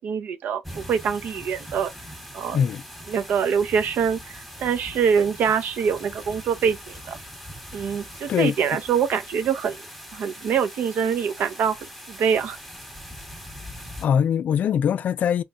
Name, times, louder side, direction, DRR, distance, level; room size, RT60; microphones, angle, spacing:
voice 1, 0.0-1.9 2.3-2.6 3.1-7.2 7.7-9.8 10.1-11.7 12.1-12.6, right 7 dB, 65° right, 0.7 m, -24 dB
sound 1, 0.6-14.1, equal, ahead, 1.2 m, -41 dB
voice 2, 2.5-2.8 8.3-8.8 14.0-15.4, left 8 dB, 55° left, 0.4 m, -22 dB
3.6 x 3.0 x 2.4 m
cardioid pair, 135°, 3 cm